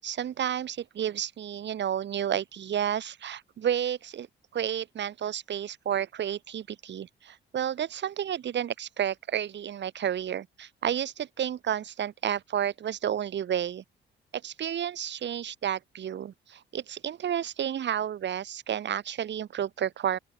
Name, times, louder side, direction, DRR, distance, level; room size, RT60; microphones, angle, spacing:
voice 1, 0.0-4.3 4.5-13.8 14.3-20.2, right 9 dB, 65° right, 5.8 m, -31 dB
open air
cardioid pair, 90°, 20 cm